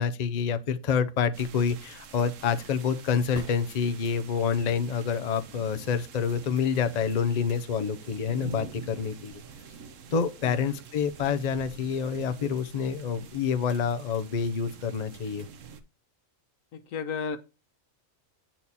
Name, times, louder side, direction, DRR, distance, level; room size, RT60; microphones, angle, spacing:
voice 1, 0.0-9.3 10.1-15.5, left 6 dB, 40° left, 0.6 m, -27 dB
sound 1, 1.3-15.8, right 6 dB, 70° right, 1.2 m, -47 dB
sound 2, 3.3-4.5 8.3-8.4, right 2 dB, 25° right, 1.4 m, -44 dB
voice 2, 10.4-10.8 16.7-17.4, left 6 dB, 80° left, 1.3 m, -33 dB
8.4 x 4.5 x 4.1 m
omnidirectional pair, 1.4 m